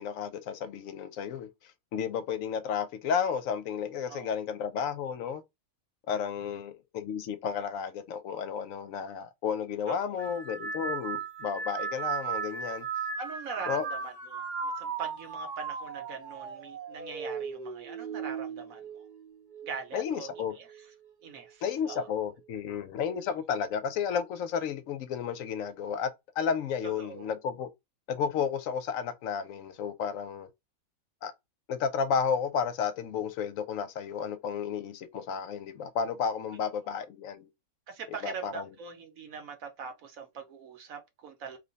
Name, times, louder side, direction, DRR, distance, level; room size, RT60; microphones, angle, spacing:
voice 1, 0.0-1.5 1.9-5.4 6.1-12.9 13.7-13.8 19.9-20.5 21.6-27.7 28.1-30.5 31.2-31.3 31.7-37.5 38.2-38.6, left 7 dB, 75° left, 0.9 m, -32 dB
voice 2, 9.9-10.4 13.2-19.0 19.6-20.9 21.2-22.1 26.8-27.3 36.8-37.0 37.9-41.6, right 5 dB, 75° right, 1.2 m, -42 dB
sound 1, 10.2-19.8 20.2-20.8 21.8-22.2, right 6 dB, 45° right, 0.6 m, -37 dB
2.9 x 2.1 x 3.9 m
omnidirectional pair, 1.5 m